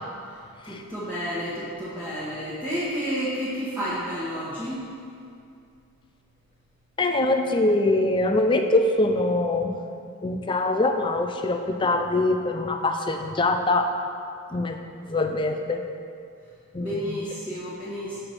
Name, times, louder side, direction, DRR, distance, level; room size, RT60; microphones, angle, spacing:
voice 1, 0.6-4.9 16.8-18.2, equal, 10° right, -13 dB, 1.3 m, -31 dB
voice 2, 7.0-9.8 10.2-13.9 14.5-14.8 15.0-15.8 16.7-17.2, left 2 dB, 20° left, 5 dB, 0.4 m, -23 dB
5.6 x 4.9 x 6.5 m, 2.4 s
head